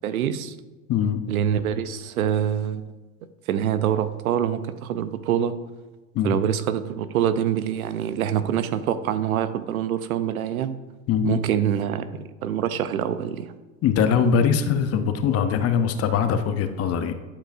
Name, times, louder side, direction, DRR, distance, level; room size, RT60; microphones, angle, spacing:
voice 1, 0.0-0.5 1.3-2.8 3.5-5.5 6.2-10.8 11.2-12.1 12.4-13.5, right 9 dB, 90° right, 12 dB, 0.6 m, -25 dB
voice 2, 0.9-1.2 6.1-6.4 11.1-11.4 13.8-17.1, left 7 dB, 35° left, 9 dB, 0.7 m, -22 dB
10.5 x 4.9 x 2.6 m, 1.2 s
hypercardioid pair, 100°, 42 cm